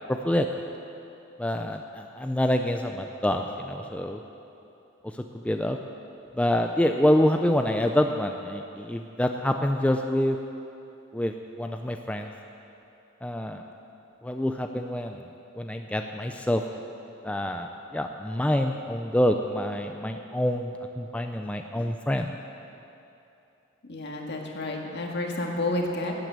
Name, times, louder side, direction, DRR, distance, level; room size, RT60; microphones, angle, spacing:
voice 1, 0.1-0.5 1.4-4.2 5.3-5.8 6.4-10.4 11.1-11.3 11.6-12.3 13.2-13.6 14.2-15.2 15.6-16.6 17.2-22.3, left 1 dB, 5° left, 4 dB, 0.4 m, -26 dB
voice 2, 23.9-26.1, left 2 dB, 55° left, 1 dB, 1.8 m, -30 dB
12.0 x 9.3 x 8.0 m, 2.8 s
head